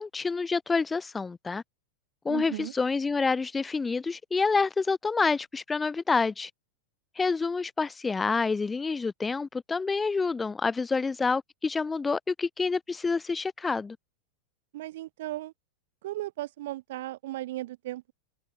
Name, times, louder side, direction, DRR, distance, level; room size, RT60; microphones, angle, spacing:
voice 1, 0.0-1.6 2.2-6.5 7.2-14.0, left 4 dB, 15° left, 0.7 m, -28 dB
voice 2, 2.3-2.7 14.7-15.5 16.0-18.1, right 16 dB, 55° right, 4.1 m, -36 dB
figure-of-eight pair, 90°, 0 cm